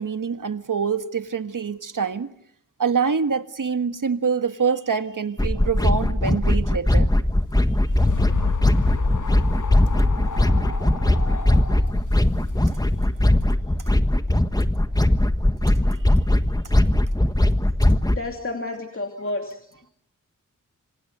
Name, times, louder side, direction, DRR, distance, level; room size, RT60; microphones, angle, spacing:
voice 1, 0.0-2.3 2.8-7.1, right 6 dB, 70° right, 1.6 m, -25 dB
sound 1, 5.4-18.2, left 1 dB, 10° left, 1.4 m, -20 dB
sound 2, 7.4-13.0, left 5 dB, 65° left, 1.4 m, -28 dB
voice 2, 18.0-19.9, left 2 dB, 40° left, 2.7 m, -31 dB
26.5 x 26.5 x 6.8 m
wide cardioid pair, 70°, 33 cm